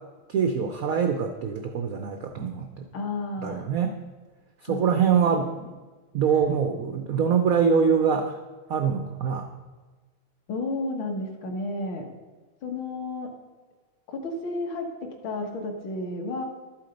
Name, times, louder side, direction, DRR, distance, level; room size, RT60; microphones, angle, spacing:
voice 1, 0.3-2.9 3.4-4.0 4.6-5.5 6.1-8.4 8.7-9.5, right 6 dB, 85° right, 5 dB, 0.7 m, -24 dB
voice 2, 2.9-3.7 4.7-5.7 10.5-12.1 12.6-13.3 14.1-16.4, left 2 dB, 60° left, 2 dB, 2.0 m, -32 dB
12.0 x 7.5 x 5.2 m, 1.3 s
omnidirectional pair, 2.4 m